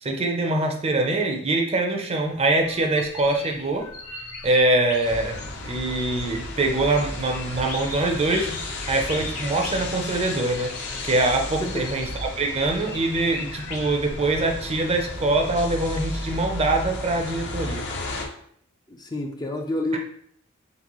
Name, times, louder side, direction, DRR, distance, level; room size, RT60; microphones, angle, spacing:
voice 1, 0.0-3.9 4.4-5.4 5.6-10.8 11.0-17.9, right 2 dB, 30° right, 3 dB, 0.6 m, -24 dB
sound 1, 2.2-14.4, left 3 dB, 75° left, 1.0 m, -40 dB
sound 2, 5.0-18.3, left 2 dB, 55° left, 0.7 m, -34 dB
voice 2, 18.9-20.0, left 1 dB, 20° left, 2 dB, 0.4 m, -29 dB
4.0 x 3.9 x 3.0 m, 0.69 s
head